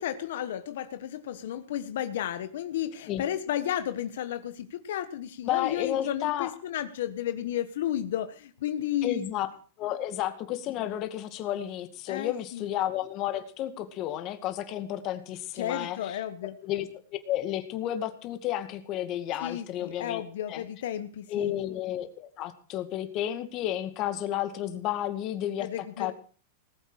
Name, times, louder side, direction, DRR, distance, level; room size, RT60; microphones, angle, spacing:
voice 1, 0.0-9.2 12.1-12.7 15.5-16.5 19.4-21.5 25.6-26.1, left 11 dB, 75° left, 10 dB, 1.3 m, -33 dB
voice 2, 5.5-6.5 9.0-9.5 9.8-16.2 16.6-16.9 17.3-20.2 20.5-20.6 21.3-25.7 26.0-26.1, left 12 dB, 40° left, 9 dB, 2.2 m, -32 dB
19.5 x 8.4 x 6.5 m, 0.41 s
supercardioid pair, 140°, 0 cm